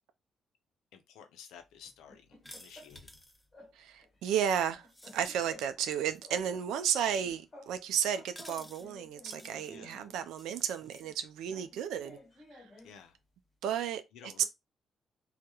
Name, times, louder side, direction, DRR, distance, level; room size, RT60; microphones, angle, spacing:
voice 1, 0.9-3.2 9.7-10.0 12.8-13.2 14.1-14.5, left 7 dB, 90° left, 0.4 m, -53 dB
sound 1, 1.8-3.2 3.5-3.8 4.0-5.9 6.2-10.2 11.0-13.0, left 1 dB, 30° left, 1.2 m, -55 dB
sound 2, 2.4-3.4 4.9-5.4 6.0-6.4 8.3-8.9 9.3-9.7 10.3-11.0, left 1 dB, 5° left, 0.5 m, -52 dB
voice 2, 3.8-4.9 5.1-12.2 12.5-12.6 13.6-14.3, right 9 dB, 90° right, 0.3 m, -33 dB
2.2 x 2.0 x 2.9 m
cardioid pair, 90°, 0 cm